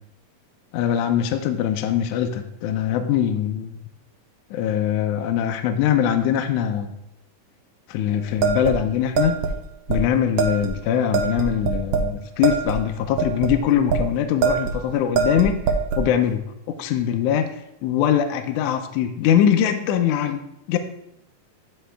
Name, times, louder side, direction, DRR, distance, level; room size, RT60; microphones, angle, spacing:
voice 1, 0.7-3.8 4.5-6.9 7.9-9.4 9.9-15.6 16.0-16.4 16.8-17.5 17.8-20.4 20.7-20.8, left 9 dB, 80° left, 7 dB, 1.9 m, -22 dB
sound 1, 8.4-9.5 9.9-10.0 10.4-10.7 11.1-12.1 12.4-14.0 14.4-14.8 15.2-16.1, right 6 dB, 85° right, 1.3 m, -23 dB
12.5 x 4.6 x 3.4 m, 0.79 s
omnidirectional pair, 3.8 m